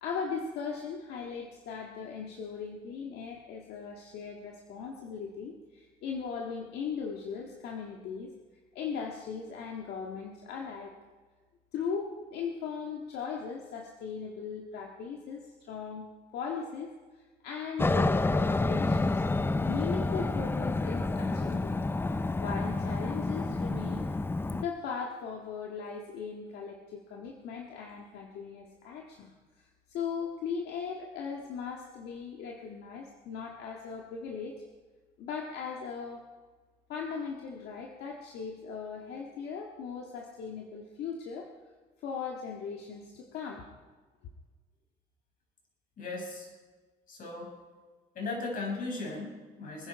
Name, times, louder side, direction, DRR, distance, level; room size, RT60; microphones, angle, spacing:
voice 1, 0.0-8.3 8.7-10.9 11.7-16.1 16.3-19.2 19.7-21.9 22.4-24.1 24.5-34.6 35.2-36.2 36.9-41.5 42.0-43.6, left 6 dB, 80° left, 0 dB, 1.8 m, -38 dB
Aircraft, 17.8-24.6, left 2 dB, 15° left, 0.5 m, -29 dB
voice 2, 46.0-46.5 47.1-47.6 48.1-49.9, left 3 dB, 55° left, 1 dB, 5.8 m, -37 dB
24.5 x 10.5 x 4.8 m, 1.4 s
cardioid pair, 110°, 17 cm